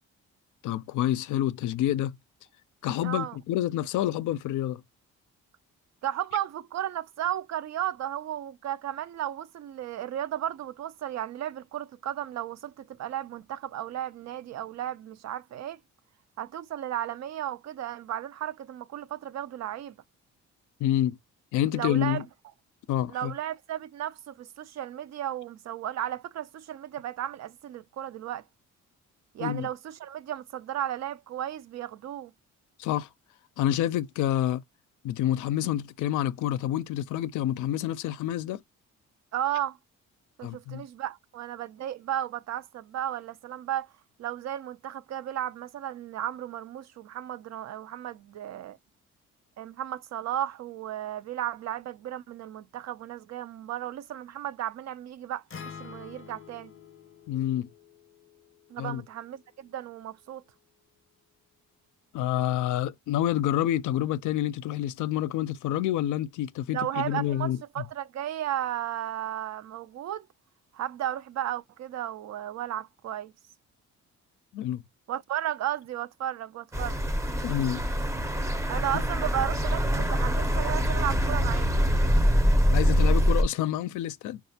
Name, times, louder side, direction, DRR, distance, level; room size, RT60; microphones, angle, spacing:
voice 1, 0.6-2.1 2.8-4.8 20.8-21.2 21.5-22.2 22.9-23.3 29.4-29.7 32.8-33.1 33.6-34.6 35.0-38.6 40.4-40.8 57.3-57.7 58.8-59.0 62.1-67.6 74.5-74.8 77.4-77.8 82.7-84.4, left 12 dB, 80° left, 0.5 m, -28 dB
voice 2, 3.0-3.4 6.0-15.8 16.4-20.0 21.7-22.2 23.1-28.4 29.3-32.3 39.3-39.8 40.4-43.9 44.2-48.8 49.6-56.7 58.7-60.4 66.7-70.3 70.7-73.3 75.1-77.0 78.7-81.7, right 11 dB, 60° right, 0.5 m, -34 dB
Acoustic guitar, 55.5-59.7, left 6 dB, 40° left, 0.7 m, -48 dB
sound 1, 76.7-83.4, equal, 10° right, 0.6 m, -24 dB
5.5 x 2.4 x 2.7 m
cardioid pair, 90°, 30 cm